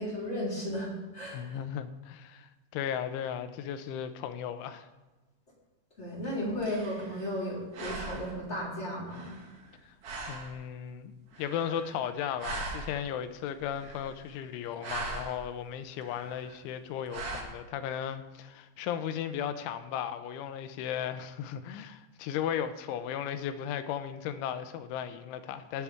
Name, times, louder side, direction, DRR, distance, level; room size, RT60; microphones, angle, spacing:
voice 1, 0.0-1.5 6.0-9.4, equal, 15° left, -6 dB, 4.1 m, -34 dB
voice 2, 1.3-4.9 9.9-10.0 10.3-25.8, left 9 dB, 85° left, 10 dB, 3.2 m, -36 dB
sound 1, 6.2-7.5 7.7-8.5 9.1-9.7 10.0-10.6 11.3-12.1 12.4-13.1 13.6-14.3 14.6-15.4 16.0-16.6 17.1-17.4, right 3 dB, 60° right, 1.5 m, -40 dB
18.5 x 8.2 x 3.6 m, 1.1 s
omnidirectional pair, 5.4 m